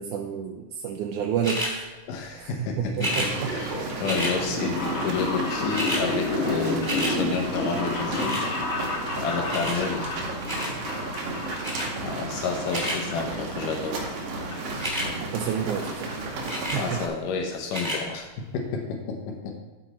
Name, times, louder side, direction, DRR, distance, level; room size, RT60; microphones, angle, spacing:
voice 1, 0.0-1.9 2.3-3.5 15.2-16.1 16.7-17.0, right 8 dB, 80° right, 2 dB, 2.1 m, -30 dB
sound 1, 1.4-1.7 2.9-3.3 4.0-4.3 5.3-5.4 5.6-6.0 6.4-7.1 8.1-8.5 9.5-9.8 10.4-10.7 11.6-11.9 12.5-13.0 14.7-15.1 16.5-16.8 17.6-18.0 18.7-18.8, equal, 10° right, 1.7 m, -30 dB
voice 2, 2.1-8.4 9.2-10.0 12.0-14.0 16.8-18.3 18.5-19.5, left 5 dB, 85° left, 2 dB, 2.6 m, -30 dB
sound 2, 3.1-17.1, right 2 dB, 60° right, 2.0 m, -33 dB
sound 3, 4.4-12.2 12.4-13.1 13.5-14.5 14.8-14.9 15.8-15.9 16.1-16.2 16.5-16.6 16.9-17.1 17.5-17.6 17.8-17.9, left 2 dB, 50° left, 2.4 m, -31 dB
13.0 x 5.1 x 4.3 m, 1.3 s
omnidirectional pair, 3.7 m